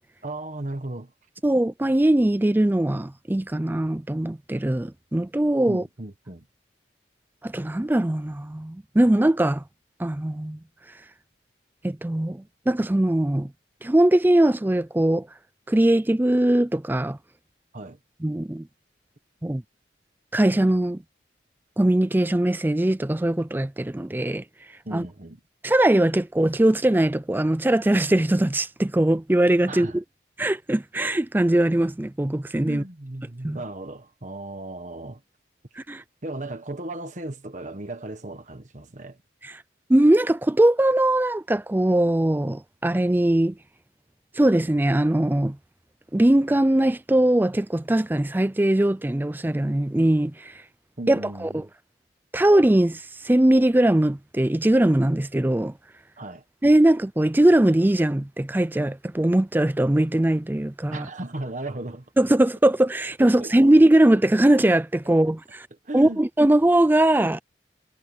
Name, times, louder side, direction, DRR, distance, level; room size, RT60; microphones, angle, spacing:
voice 1, 0.2-1.1 5.7-6.5 17.7-18.0 24.8-25.4 29.7-30.0 32.7-35.2 36.2-39.2 51.0-51.7 56.2-56.4 60.9-62.0 63.2-63.5 65.8-66.2, right 2 dB, 40° right, 1.4 m, -36 dB
voice 2, 1.4-5.8 7.4-9.6 10.0-10.6 11.8-13.5 13.8-15.3 15.7-17.2 18.2-18.6 19.4-19.6 20.3-21.0 21.8-24.4 24.9-25.0 25.6-30.0 30.4-32.8 33.4-33.6 35.9-36.0 39.4-39.5 39.9-43.5 44.4-45.6 46.1-50.5 51.1-51.6 52.3-55.7 56.6-61.1 62.2-65.7 65.9-67.4, right 1 dB, 10° right, 0.4 m, -21 dB
head